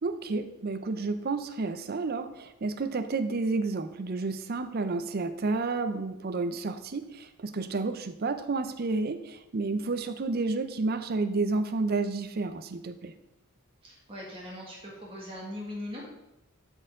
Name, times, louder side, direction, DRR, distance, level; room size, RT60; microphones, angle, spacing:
voice 1, 0.0-13.1, right 3 dB, 45° right, 10 dB, 0.5 m, -30 dB
voice 2, 13.8-16.1, left 1 dB, 25° right, -4 dB, 1.7 m, -40 dB
13.0 x 4.4 x 3.7 m, 0.89 s
head